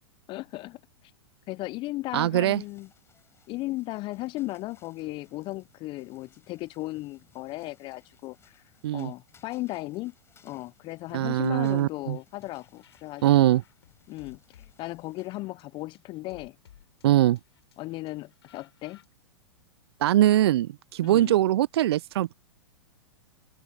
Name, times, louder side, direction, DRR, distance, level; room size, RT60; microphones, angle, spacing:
voice 1, 0.3-1.1 1.5-2.9 3.5-10.1 10.4-13.6 14.1-16.6 17.8-19.0 21.0-21.3, left 19 dB, 35° left, 0.7 m, -36 dB
voice 2, 2.1-2.6 8.8-9.1 11.1-12.2 13.2-13.6 17.0-17.4 20.0-22.3, right 13 dB, 60° right, 0.5 m, -22 dB
sound 1, 2.5-15.4, left 6 dB, 15° left, 7.0 m, -63 dB
sound 2, 12.1-19.0, left 11 dB, 65° left, 6.3 m, -58 dB
open air
hypercardioid pair, 105°, 15 cm